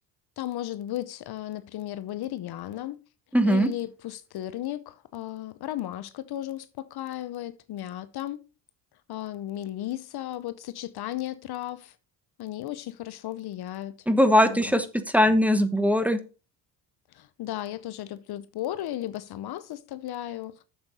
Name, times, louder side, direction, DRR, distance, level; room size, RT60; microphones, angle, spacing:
voice 1, 0.4-3.0 3.4-8.4 9.1-11.9 12.4-13.9 14.4-14.9 17.1-20.5, left 13 dB, 55° left, 0.7 m, -35 dB
voice 2, 3.3-3.7 14.1-14.9 15.1-16.2, equal, 5° right, 1.0 m, -20 dB
8.7 x 7.2 x 4.1 m
cardioid pair, 100°, 46 cm